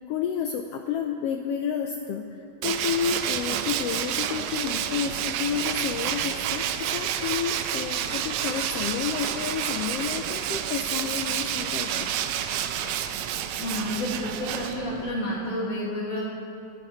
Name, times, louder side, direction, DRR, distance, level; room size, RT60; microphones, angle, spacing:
voice 1, 0.1-12.1, left 8 dB, 85° left, 4 dB, 1.4 m, -30 dB
Tools, 2.6-15.1, right 10 dB, 85° right, 2.0 m, -29 dB
sound 1, 7.2-7.3 7.6-7.7 8.1-8.2 8.5-8.6 8.9-9.0 9.2-9.3 9.6-9.7 10.0-10.1 10.4-10.5 10.7-10.8 11.1-11.2 11.5-11.6 12.0-12.1 12.4-12.5 12.8-12.9 14.6-15.6, right 2 dB, 65° right, 4.4 m, -43 dB
voice 2, 13.5-16.2, left 1 dB, 60° left, -8 dB, 3.1 m, -30 dB
26.5 x 10.5 x 3.1 m, 2.7 s
omnidirectional pair, 3.3 m